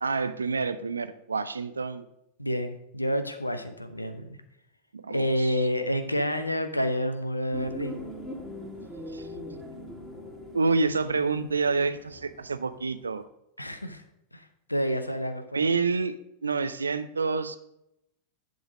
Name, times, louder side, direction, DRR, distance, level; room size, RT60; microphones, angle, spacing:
voice 1, 0.0-2.1 4.9-5.6 9.1-9.3 10.5-13.3 15.5-16.1 16.4-17.6, right 4 dB, 75° right, 12 dB, 0.5 m, -28 dB
voice 2, 2.4-4.4 5.1-8.0 13.6-14.0 14.3-15.6, equal, 85° left, 9 dB, 0.8 m, -29 dB
sound 1, 7.5-12.8 13.1-13.2, left 1 dB, ahead, 2.7 m, -41 dB
10.5 x 4.0 x 6.2 m, 0.83 s
figure-of-eight pair, 90°, 0 cm